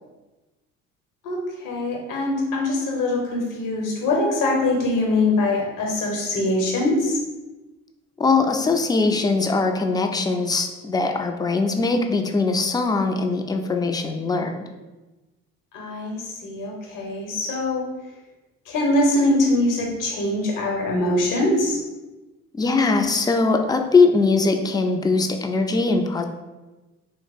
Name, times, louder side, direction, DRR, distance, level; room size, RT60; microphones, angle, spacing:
voice 1, 1.2-7.2 15.7-17.9 18.7-21.8, left 2 dB, 65° left, 0 dB, 0.9 m, -23 dB
voice 2, 8.2-14.7 22.6-26.2, left 3 dB, 10° left, 5 dB, 0.3 m, -21 dB
2.9 x 2.0 x 4.0 m, 1.1 s
hypercardioid pair, 55°, 35 cm